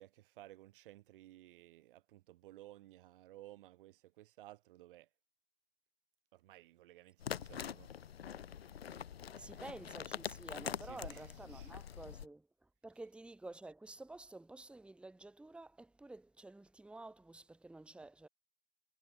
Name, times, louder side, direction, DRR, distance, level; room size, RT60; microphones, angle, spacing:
voice 1, 0.0-5.1 6.3-7.9 9.3-9.7 10.8-11.7, right 15 dB, 60° right, 1.2 m, -57 dB
sound 1, 7.2-12.3, left 9 dB, 85° left, 0.7 m, -44 dB
voice 2, 9.4-12.5 12.8-18.3, right 2 dB, 5° right, 1.1 m, -51 dB
hypercardioid pair, 100°, 30 cm